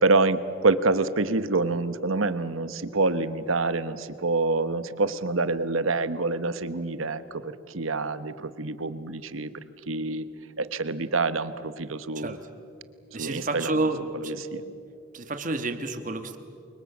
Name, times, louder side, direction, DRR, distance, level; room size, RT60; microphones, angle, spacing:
voice 1, 0.0-9.5 9.9-10.3 10.6-12.3 13.2-13.9 14.3-14.6, right 3 dB, 85° right, 13 dB, 1.1 m, -26 dB
voice 2, 13.1-14.7 15.1-16.4, right 2 dB, 40° right, 8 dB, 1.5 m, -30 dB
29.0 x 24.0 x 7.3 m, 2.6 s
head